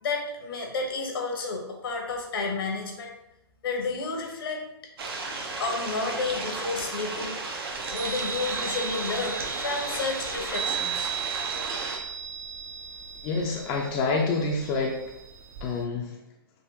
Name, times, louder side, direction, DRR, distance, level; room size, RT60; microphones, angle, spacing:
voice 1, 0.0-3.1 3.6-4.6 5.6-7.4 7.9-11.1, left 4 dB, 70° left, 1 dB, 1.0 m, -31 dB
sound 1, 5.0-12.0, right 3 dB, 80° right, 0.8 m, -34 dB
Chime, 7.7-15.8, right 7 dB, 40° right, 0.5 m, -36 dB
voice 2, 13.2-15.0 15.6-16.1, left 3 dB, 30° left, 0 dB, 0.4 m, -27 dB
3.7 x 2.5 x 2.8 m, 0.90 s
hypercardioid pair, 135°, 13 cm